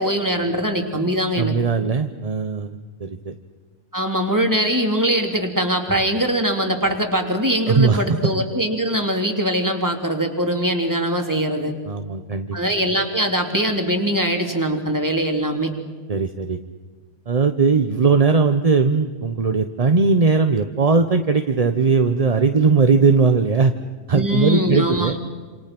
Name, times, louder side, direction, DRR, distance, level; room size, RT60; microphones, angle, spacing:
voice 1, 0.0-1.6 3.9-11.7 12.5-15.7 24.1-25.2, equal, 10° right, 3 dB, 3.0 m, -22 dB
voice 2, 1.4-3.4 7.7-8.2 11.9-12.6 16.1-16.6 17.3-23.7 24.1-25.1, right 4 dB, 30° right, 7 dB, 0.8 m, -19 dB
27.5 x 27.5 x 6.0 m, 1.5 s
omnidirectional pair, 1.5 m